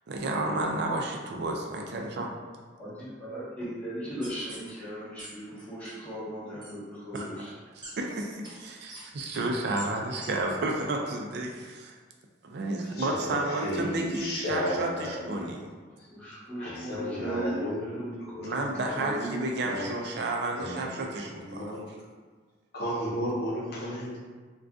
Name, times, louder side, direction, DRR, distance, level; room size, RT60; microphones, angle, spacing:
voice 1, 0.1-2.3 7.1-7.5 8.0-12.0 12.4-15.6 18.4-21.7, right 2 dB, 60° right, 1 dB, 0.4 m, -31 dB
voice 2, 2.8-7.5 16.1-19.8, right 1 dB, 5° left, -10 dB, 1.0 m, -37 dB
sound 1, 4.2-4.7 5.2-5.3 5.6-5.9 6.6-6.7 7.1-7.2 7.8-7.9 8.4-8.5 8.9-9.0 9.3-9.4 9.8-9.9 10.2-10.3 10.8-10.9, right 1 dB, 25° right, 0.7 m, -44 dB
voice 3, 13.0-13.3 13.6-15.3 16.6-17.8 18.3-18.5 19.7-19.9 20.6-21.8 22.7-24.2, equal, 60° left, -4 dB, 0.7 m, -33 dB
2.5 x 2.3 x 3.5 m, 1.4 s
head